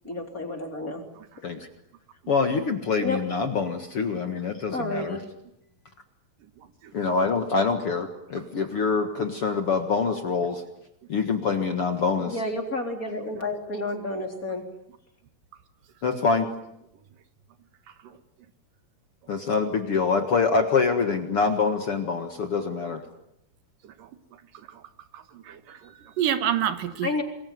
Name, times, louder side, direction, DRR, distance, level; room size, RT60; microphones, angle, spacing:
voice 1, 0.0-1.0 3.0-3.2 4.7-5.2 12.2-14.6 27.0-27.2, left 2 dB, 25° left, 3 dB, 4.0 m, -30 dB
voice 2, 2.3-5.2 6.9-10.6 11.1-12.4 16.0-16.5 19.3-23.0, left 4 dB, 50° left, 6 dB, 2.2 m, -25 dB
voice 3, 6.6-6.9 18.0-18.2 23.8-24.1 24.5-24.8 25.1-27.1, right 10 dB, 80° right, 10 dB, 3.1 m, -30 dB
27.5 x 21.0 x 9.4 m, 0.80 s
omnidirectional pair, 3.9 m